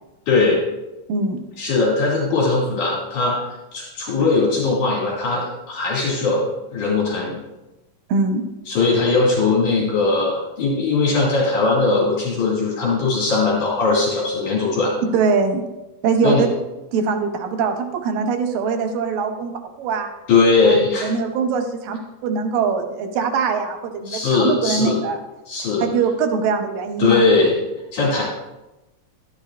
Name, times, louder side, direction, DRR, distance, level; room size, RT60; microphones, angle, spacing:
voice 1, 0.3-0.6 1.6-3.4 3.7-6.5 6.7-7.4 8.7-14.9 16.2-16.5 20.3-21.1 24.1-25.0 25.5-25.9 27.0-27.6 27.9-28.2, left 3 dB, 70° left, -5 dB, 3.9 m, -19 dB
voice 2, 1.1-1.4 8.1-8.4 15.1-15.6 16.0-16.5 16.9-19.5 19.8-20.1 20.7-25.2 25.8-27.2, right 5 dB, 90° right, 5 dB, 2.7 m, -22 dB
13.0 x 11.5 x 2.5 m, 1.0 s
omnidirectional pair, 3.8 m